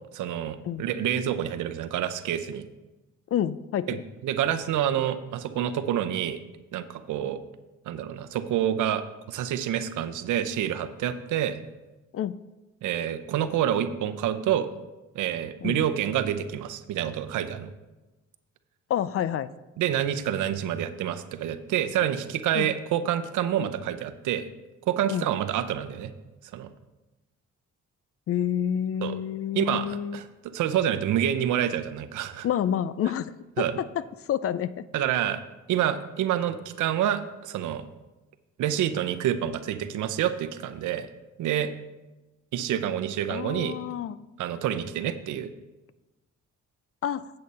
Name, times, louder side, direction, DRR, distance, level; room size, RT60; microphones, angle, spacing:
voice 1, 0.1-2.6 3.9-6.4 6.7-7.4 7.9-11.6 12.8-14.7 15.1-17.7 19.8-24.5 24.9-26.1 26.5-26.7 29.0-29.2 29.5-32.5 33.6-33.8 34.9-35.4 35.7-37.8 38.6-41.1 41.4-41.7 42.5-43.8 44.4-45.5, right 10 dB, 80° right, 10 dB, 0.7 m, -28 dB
voice 2, 3.3-4.0 12.1-12.4 15.6-15.8 18.9-19.5 22.5-22.7 25.1-25.3 28.3-30.2 32.4-33.9 34.3-34.8 43.3-44.2 47.0-47.2, left 10 dB, 50° left, 16 dB, 0.4 m, -28 dB
8.6 x 7.7 x 4.1 m, 1.1 s
cardioid pair, 90°, 30 cm